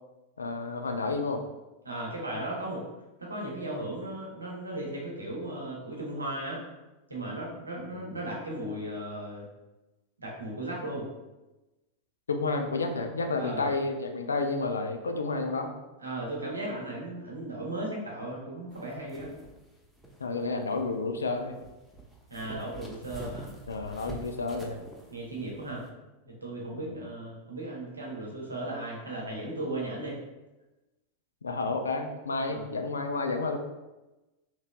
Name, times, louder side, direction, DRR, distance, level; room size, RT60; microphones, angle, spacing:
voice 1, 0.4-1.4 7.9-8.1 12.3-15.7 20.2-21.6 23.7-24.8 26.7-27.0 31.4-33.6, left 3 dB, 75° left, 5 dB, 0.3 m, -30 dB
voice 2, 1.8-2.8 3.2-6.6 7.1-9.5 10.2-11.1 13.4-13.7 16.0-19.3 22.3-23.5 25.1-25.8 26.2-30.2 32.5-32.7, right 1 dB, 80° right, -3 dB, 0.8 m, -36 dB
sound 1, 18.7-25.9, right 2 dB, ahead, 0.5 m, -47 dB
3.0 x 2.8 x 2.2 m, 1.1 s
figure-of-eight pair, 90°, 0 cm